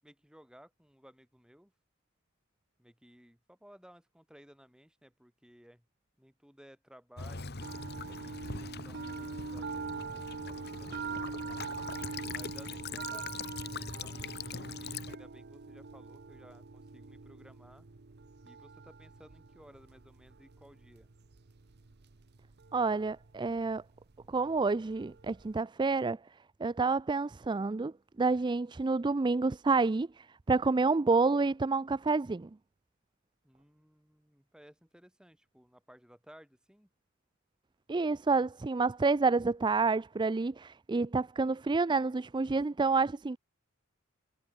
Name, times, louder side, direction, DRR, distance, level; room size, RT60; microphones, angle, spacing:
voice 1, 0.0-1.7 2.8-5.9 6.2-11.5 12.3-17.9 18.4-21.1 33.4-36.9, equal, 5° right, 7.0 m, -58 dB
Child speech kid speaking / Bird vocalization bird call bird song / Stream, 7.2-15.2, left 4 dB, 50° left, 2.6 m, -42 dB
sound 1, 7.6-25.6, right 4 dB, 50° right, 0.8 m, -44 dB
voice 2, 22.7-23.8 24.3-26.2 26.6-32.5 37.9-43.4, right 4 dB, 20° right, 0.4 m, -29 dB
head